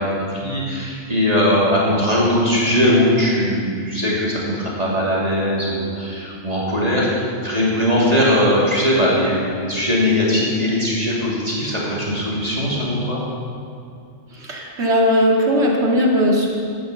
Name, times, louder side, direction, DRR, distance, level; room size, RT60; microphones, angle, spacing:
voice 1, 0.0-13.2, left 1 dB, 30° right, -6 dB, 2.9 m, -20 dB
voice 2, 14.3-16.5, equal, 65° right, -3 dB, 2.5 m, -18 dB
13.5 x 10.0 x 7.0 m, 2.4 s
omnidirectional pair, 1.3 m